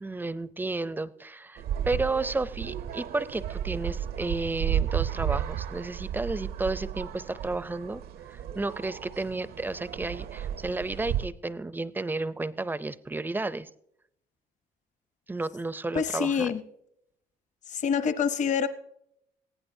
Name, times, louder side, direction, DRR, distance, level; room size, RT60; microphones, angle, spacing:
voice 1, 0.0-8.0 8.3-13.7 15.3-16.5, right 2 dB, 10° right, 16 dB, 0.4 m, -32 dB
sound 1, 1.6-11.3, right 10 dB, 65° right, 0.6 m, -33 dB
voice 2, 15.9-16.6 17.7-18.7, left 6 dB, 45° left, 11 dB, 0.8 m, -26 dB
19.5 x 15.0 x 2.7 m, 0.76 s
cardioid pair, 110°, 17 cm